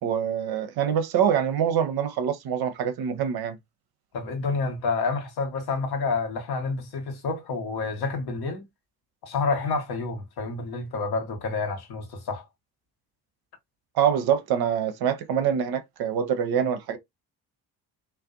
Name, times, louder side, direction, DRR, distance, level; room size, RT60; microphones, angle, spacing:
voice 1, 0.0-3.6 14.0-17.0, right 8 dB, 50° right, 0.6 m, -25 dB
voice 2, 4.1-8.6 9.2-12.4, left 4 dB, 50° left, 0.9 m, -29 dB
2.4 x 2.2 x 2.4 m
hypercardioid pair, 50°, 48 cm